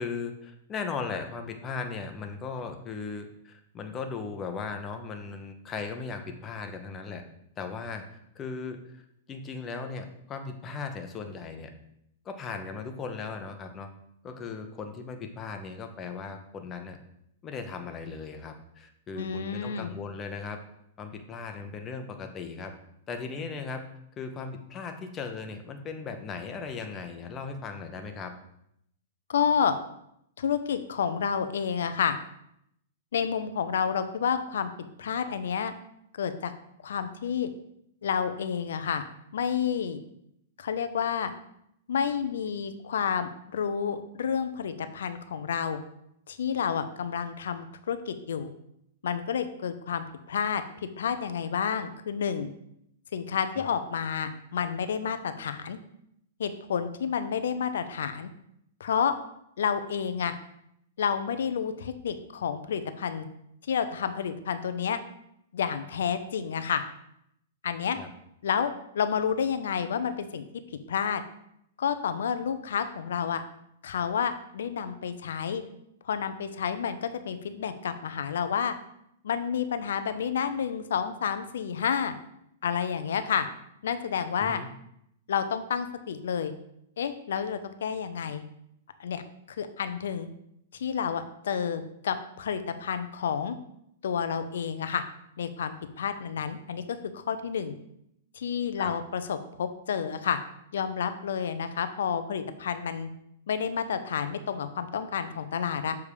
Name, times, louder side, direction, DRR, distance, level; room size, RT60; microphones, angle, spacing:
voice 1, 0.0-7.2 7.6-9.0 9.3-11.7 12.2-13.9 14.2-17.0 17.4-20.6 21.0-22.7 23.1-23.9 24.2-28.3 53.6-53.7 68.0-68.1 84.4-84.7 98.8-98.9, left 5 dB, 20° left, 6 dB, 0.8 m, -37 dB
voice 2, 19.2-19.9 29.3-29.7 30.4-32.2 33.1-34.7 35.0-35.7 36.2-36.5 36.8-37.5 38.0-39.0 39.3-40.0 40.6-41.3 41.9-45.8 46.3-48.5 49.0-52.5 53.1-55.8 56.4-58.3 58.8-59.1 59.6-60.3 61.0-63.3 63.7-65.0 65.5-66.8 67.6-68.0 68.4-70.4 70.9-71.2 71.8-73.4 73.8-75.6 76.0-78.7 79.2-82.2 82.6-83.5 83.8-84.6 85.3-86.5 87.0-88.4 89.0-89.2 89.6-90.3 90.7-93.6 94.0-95.0 95.4-97.8 98.3-100.4 100.7-103.1 103.5-106.0, left 7 dB, 80° left, 10 dB, 0.6 m, -30 dB
6.9 x 3.5 x 4.9 m, 0.76 s
hypercardioid pair, 140°, 0 cm